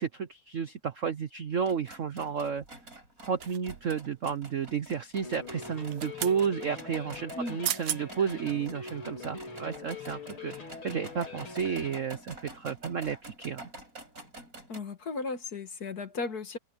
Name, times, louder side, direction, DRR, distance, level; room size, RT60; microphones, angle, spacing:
voice 1, 0.0-2.6 3.2-10.5 10.8-13.6, right 7 dB, 60° right, 0.8 m, -32 dB
sound 1, 1.5-14.8, right 2 dB, 40° right, 6.7 m, -48 dB
sound 2, 3.4-4.0 5.7-6.4 7.4-7.5 7.6-8.0 8.6-8.7, right 11 dB, 80° right, 1.8 m, -35 dB
sound 3, 5.2-12.0, left 4 dB, 75° left, 4.7 m, -43 dB
voice 2, 14.7-16.6, left 3 dB, 45° left, 2.2 m, -35 dB
omnidirectional pair, 2.3 m